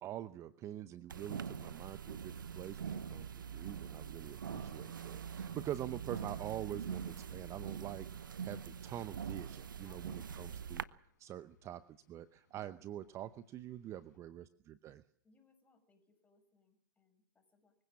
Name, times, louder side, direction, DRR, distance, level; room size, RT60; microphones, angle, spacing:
voice 1, 0.0-8.1 8.4-10.8 11.2-15.0, right 12 dB, 25° right, 14 dB, 0.8 m, -45 dB
sound 1, 1.1-10.8, right 7 dB, 75° right, 0.9 m, -43 dB
sound 2, 2.4-14.2, left 5 dB, 55° left, 5.6 m, -70 dB
voice 2, 9.8-10.7 13.9-14.5 15.2-17.7, left 3 dB, 15° left, 7 dB, 6.2 m, -71 dB
24.0 x 16.0 x 7.4 m, 0.64 s
figure-of-eight pair, 105°, 11 cm